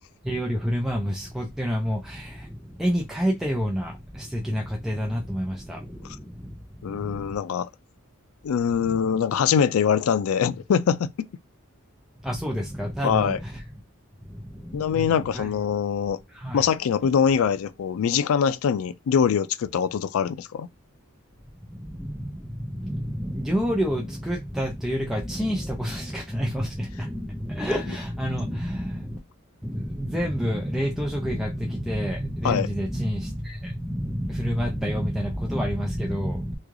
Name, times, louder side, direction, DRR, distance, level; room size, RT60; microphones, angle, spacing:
voice 1, 0.2-7.3 8.9-9.0 12.2-13.6 14.2-15.5 16.3-16.7 21.7-29.2 29.6-36.6, equal, ahead, 0.5 m, -29 dB
voice 2, 6.8-7.7 8.4-11.1 13.0-13.4 14.7-16.2 16.5-20.7 32.4-32.7, left 7 dB, 70° left, 0.3 m, -23 dB
3.1 x 2.3 x 3.6 m
head